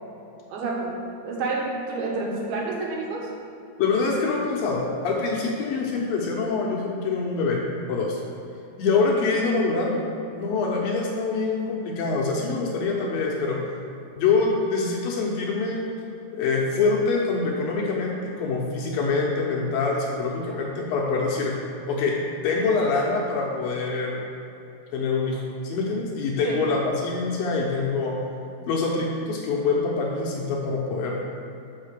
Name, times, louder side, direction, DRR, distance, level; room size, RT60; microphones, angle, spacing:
voice 1, 0.5-3.3 26.4-26.6, right 3 dB, 75° right, -2 dB, 3.1 m, -29 dB
voice 2, 3.8-7.6 7.9-8.2 8.8-10.1 10.4-13.6 14.2-15.9 16.3-21.5 21.9-22.2 22.4-24.2 24.9-28.2 28.7-31.2, left 4 dB, 75° left, -2 dB, 2.4 m, -25 dB
6.5 x 5.5 x 6.6 m, 2.7 s
omnidirectional pair, 4.6 m